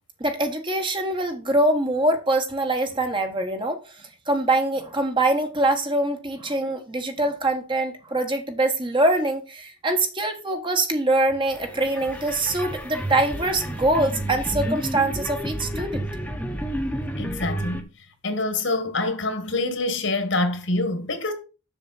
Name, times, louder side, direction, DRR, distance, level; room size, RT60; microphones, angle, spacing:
voice 1, 0.2-16.1, right 2 dB, 25° right, 1.4 m, -24 dB
sound 1, 11.5-17.8, right 1 dB, 5° left, 1.1 m, -31 dB
voice 2, 17.2-17.9 18.2-21.3, left 2 dB, 65° left, 1.7 m, -26 dB
7.3 x 6.9 x 4.1 m
head